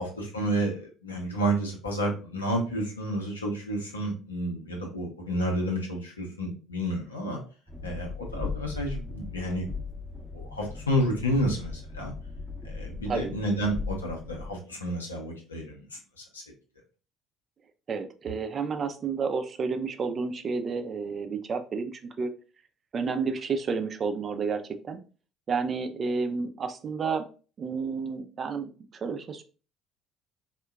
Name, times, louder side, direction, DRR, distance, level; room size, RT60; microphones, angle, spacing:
voice 1, 0.0-7.4 7.8-9.7 10.3-12.1 12.6-16.4, right 1 dB, 90° left, 0 dB, 0.6 m, -30 dB
Train, 7.7-14.5, left 3 dB, 5° left, 0.7 m, -38 dB
voice 2, 17.9-22.3 22.9-25.0 25.5-27.2 27.6-29.4, right 5 dB, 40° right, 7 dB, 0.4 m, -31 dB
3.5 x 2.1 x 2.2 m, 0.36 s
figure-of-eight pair, 55°, 0 cm